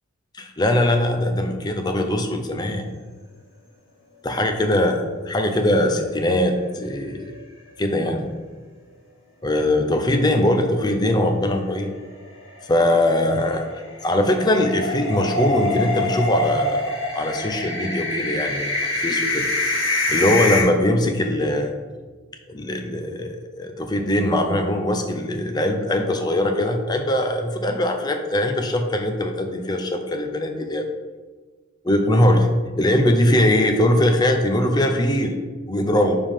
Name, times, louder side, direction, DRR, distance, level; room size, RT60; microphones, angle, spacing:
voice 1, 0.3-2.9 4.2-5.0 5.3-7.3 7.8-8.3 9.4-11.9 12.7-13.7 14.0-19.5 20.1-21.7 22.5-30.8 31.8-32.5 32.8-35.4 35.7-36.2, left 1 dB, 20° left, 5 dB, 0.5 m, -21 dB
sound 1, 5.7-6.6 6.9-7.0 7.4-7.5 11.6-20.6, left 2 dB, 75° left, 1.7 m, -25 dB
5.1 x 3.5 x 5.5 m, 1.3 s
head